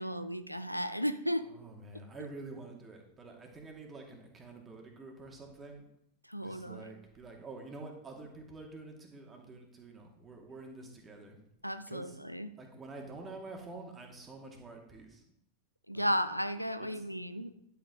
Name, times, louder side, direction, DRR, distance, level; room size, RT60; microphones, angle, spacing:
voice 1, 0.0-1.5 6.2-6.9 11.6-12.5 15.9-17.5, equal, 90° left, 12 dB, 0.5 m, -34 dB
voice 2, 1.4-5.8 6.3-11.4 11.9-12.2 12.6-15.2 15.9-16.1 16.8-17.0, right 3 dB, 20° right, 1 dB, 2.4 m, -48 dB
11.0 x 8.0 x 3.8 m, 0.76 s
figure-of-eight pair, 90°, 0 cm